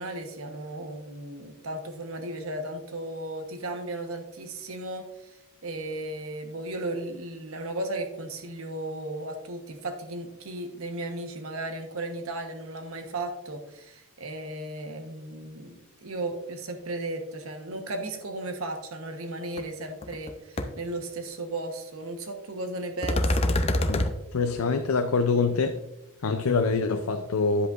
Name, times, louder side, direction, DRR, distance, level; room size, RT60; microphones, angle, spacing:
voice 1, 0.0-23.5, right 2 dB, 85° right, 5 dB, 1.2 m, -35 dB
sound 1, 19.6-19.7 20.0-20.3 20.6-20.7 23.0-24.1, left 1 dB, 30° left, 0.6 m, -24 dB
voice 2, 24.3-25.7 26.2-27.7, left 4 dB, 90° left, 7 dB, 0.5 m, -25 dB
10.0 x 7.9 x 2.5 m, 0.91 s
head